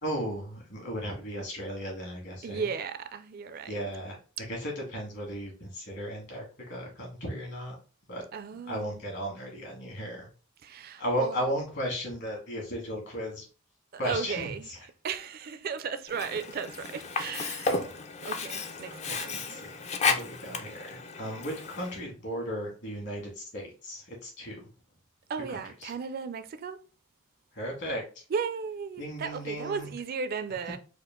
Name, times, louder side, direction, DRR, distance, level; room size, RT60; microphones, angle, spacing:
voice 1, 0.0-2.7 3.7-4.2 4.5-7.7 8.1-8.3 8.7-10.3 11.0-13.5 14.0-14.8 17.7-17.9 18.9-24.6 25.5-25.9 27.5-28.0 29.0-29.9, equal, 60° left, 2.0 m, -35 dB
voice 2, 2.4-3.7 8.3-9.0 10.6-11.5 13.9-14.7 15.0-17.7 18.2-19.6 25.3-26.8 28.3-30.8, right 5 dB, 45° right, 0.4 m, -35 dB
Sink (filling or washing), 16.1-22.0, left 4 dB, 35° left, 0.4 m, -33 dB
4.3 x 2.5 x 3.7 m
head